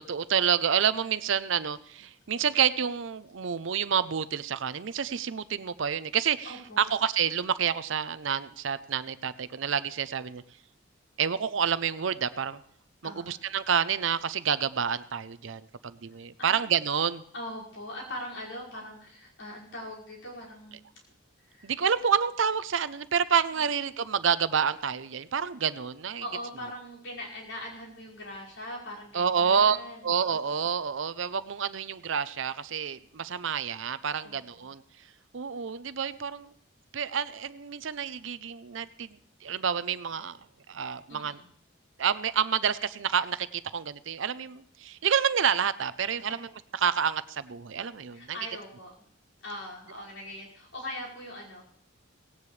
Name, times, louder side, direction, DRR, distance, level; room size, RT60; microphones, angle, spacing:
voice 1, 0.0-10.4 11.2-12.6 13.0-17.2 21.6-26.2 29.1-29.8 30.0-34.8 35.3-36.5 36.9-40.4 40.7-41.4 42.0-46.5 46.8-48.4, right 7 dB, 70° right, 15 dB, 0.6 m, -28 dB
voice 2, 6.4-6.9 13.0-13.4 16.4-16.6 17.3-20.8 21.4-21.7 23.5-23.7 26.2-30.1 34.2-34.7 41.1-41.5 46.2-46.3 48.1-48.9 49.4-51.6, left 1 dB, 70° left, -4 dB, 5.4 m, -41 dB
17.5 x 17.0 x 3.3 m, 0.64 s
head